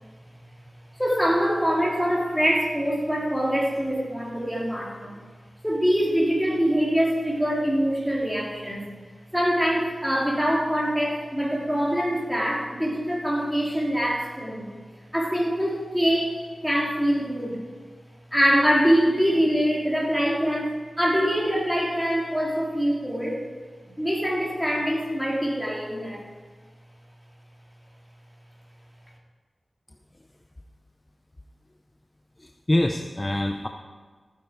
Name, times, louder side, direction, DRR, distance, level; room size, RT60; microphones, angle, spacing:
voice 1, 1.0-5.2 5.6-8.9 9.3-14.7 15.1-17.6 18.3-23.4 24.0-26.2, equal, ahead, -3 dB, 3.1 m, -24 dB
voice 2, 32.4-33.7, left 1 dB, 20° left, 4 dB, 0.6 m, -25 dB
15.0 x 9.5 x 4.9 m, 1.5 s
wide cardioid pair, 90°, 0 cm